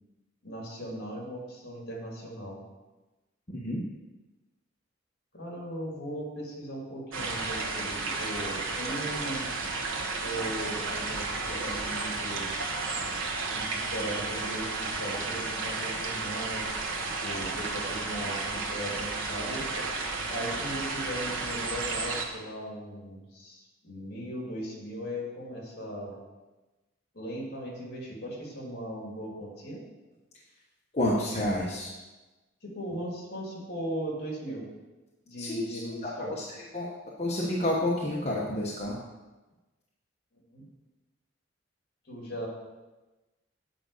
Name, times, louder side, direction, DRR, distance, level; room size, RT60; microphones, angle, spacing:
voice 1, 0.4-2.6 5.3-9.5 10.2-12.5 13.4-20.0 20.3-26.1 27.1-29.8 32.6-34.7 35.3-36.5 40.3-40.6 42.1-42.5, right 1 dB, 50° left, -2 dB, 2.9 m, -38 dB
voice 2, 3.5-3.8 30.9-31.9 35.4-36.5 36.7-36.9 37.2-39.0, left 1 dB, 35° left, -5 dB, 1.1 m, -29 dB
sound 1, 7.1-22.3, right 3 dB, 85° right, 1.3 m, -33 dB
9.0 x 5.3 x 6.6 m, 1.1 s
head